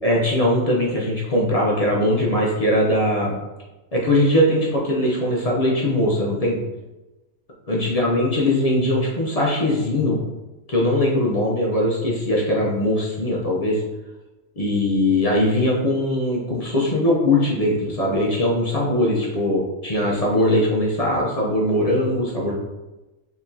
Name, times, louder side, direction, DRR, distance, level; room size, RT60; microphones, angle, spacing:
voice 1, 0.0-3.3 3.9-6.6 7.7-10.2 10.7-13.8 14.6-22.5, left 1 dB, 40° left, -4 dB, 0.5 m, -20 dB
4.5 x 3.0 x 2.7 m, 1.1 s
omnidirectional pair, 1.4 m